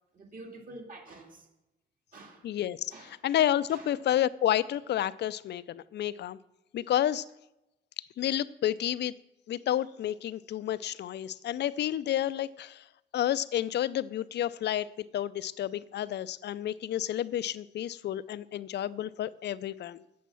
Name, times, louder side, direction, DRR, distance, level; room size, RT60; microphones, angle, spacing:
voice 1, 0.1-1.5 2.1-2.5 2.9-3.2 3.7-3.9, right 2 dB, 45° right, 2 dB, 2.4 m, -47 dB
voice 2, 2.4-6.4 6.7-7.2 8.2-9.1 9.5-12.8 13.1-14.9 15.1-20.0, left 11 dB, 60° left, 17 dB, 0.5 m, -30 dB
8.5 x 7.5 x 6.9 m, 0.92 s
cardioid pair, 90°, 20 cm